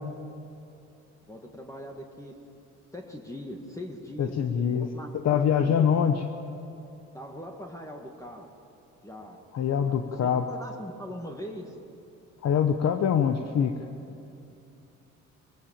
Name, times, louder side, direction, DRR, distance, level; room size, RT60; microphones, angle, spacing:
voice 1, 1.3-2.3 2.9-4.4 4.7-5.9 7.1-8.5 9.0-9.4 9.9-10.0 10.2-11.8, left 1 dB, 10° left, 1 dB, 1.8 m, -41 dB
voice 2, 4.2-4.9 5.2-6.1 9.5-10.5 12.4-13.7, left 8 dB, 60° left, 7 dB, 1.0 m, -24 dB
21.0 x 16.0 x 8.9 m, 2.7 s
cardioid pair, 90°, 30 cm